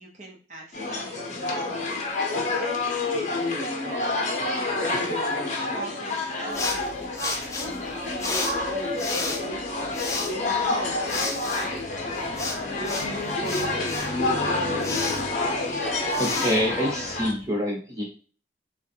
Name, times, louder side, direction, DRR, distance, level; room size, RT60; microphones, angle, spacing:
voice 1, 0.0-2.0 2.6-3.1 3.8-13.2, right 1 dB, 40° right, 0 dB, 0.9 m, -42 dB
sound 1, 0.7-17.3, left 2 dB, 40° left, 0.8 m, -28 dB
sound 2, 6.5-17.5, left 3 dB, 15° left, 0.4 m, -34 dB
voice 2, 15.7-18.0, equal, 20° right, -2 dB, 1.2 m, -27 dB
3.6 x 2.3 x 4.4 m, 0.39 s
head